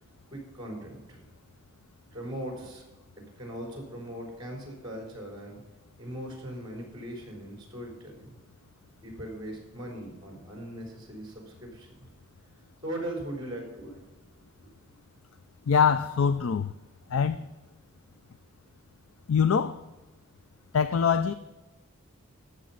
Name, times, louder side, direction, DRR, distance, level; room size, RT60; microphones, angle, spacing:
voice 1, 0.3-1.2 2.1-2.8 3.2-5.6 6.0-8.4 9.0-12.1 12.8-14.0, right 1 dB, 20° right, 3.8 m, -39 dB
voice 2, 15.7-16.7 17.1-17.4 19.3-19.8 20.7-21.3, left 6 dB, 75° left, 0.4 m, -23 dB
14.0 x 6.9 x 5.6 m
head